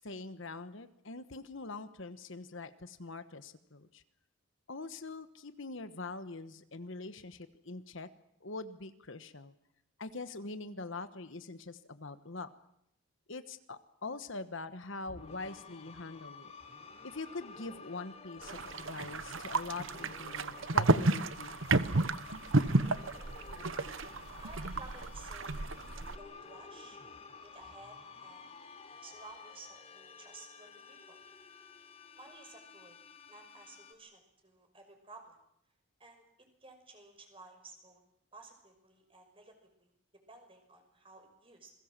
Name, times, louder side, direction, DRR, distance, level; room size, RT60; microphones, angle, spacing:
voice 1, 0.0-4.0 4.7-8.1 8.4-9.5 10.0-12.5 13.3-16.5 17.0-21.6, left 3 dB, 60° left, 11 dB, 1.2 m, -43 dB
sound 1, 15.1-33.9, left 5 dB, 30° left, 3.1 m, -51 dB
sound 2, 18.4-26.2, right 3 dB, 65° right, 1.0 m, -32 dB
voice 2, 24.4-25.7 26.2-27.0 27.4-28.5 29.0-31.2 32.2-35.4 36.0-36.3 36.6-38.0 38.3-39.9 40.3-41.7, right 3 dB, 25° right, 5 dB, 5.7 m, -54 dB
28.5 x 22.0 x 7.5 m, 0.77 s
head